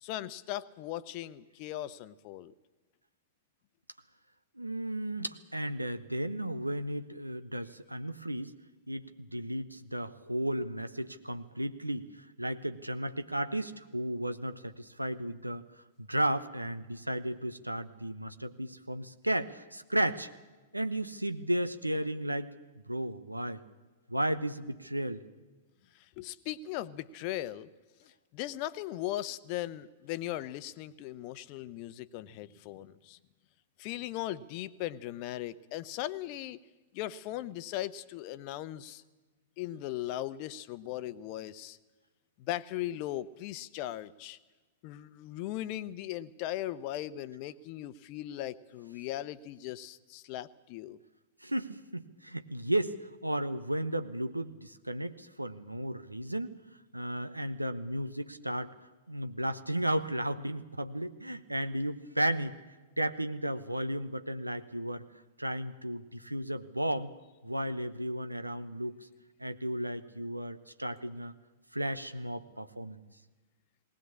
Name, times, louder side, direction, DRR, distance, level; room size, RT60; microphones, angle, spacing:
voice 1, 0.0-2.5 25.9-27.7 28.0-33.2 33.8-36.6 36.9-39.0 39.6-41.8 42.4-44.4 44.8-51.0, left 14 dB, 40° left, 15 dB, 0.8 m, -38 dB
voice 2, 4.6-8.5 8.9-15.6 16.0-20.3 20.7-22.5 22.9-23.6 24.1-25.2 51.4-53.0 53.2-56.6 56.9-58.7 59.1-62.6 63.0-65.0 65.4-67.1 67.4-69.0 69.4-71.3 71.7-73.0, right 1 dB, 90° right, 11 dB, 1.0 m, -34 dB
19.5 x 18.0 x 8.6 m, 1.2 s
figure-of-eight pair, 100°, 0 cm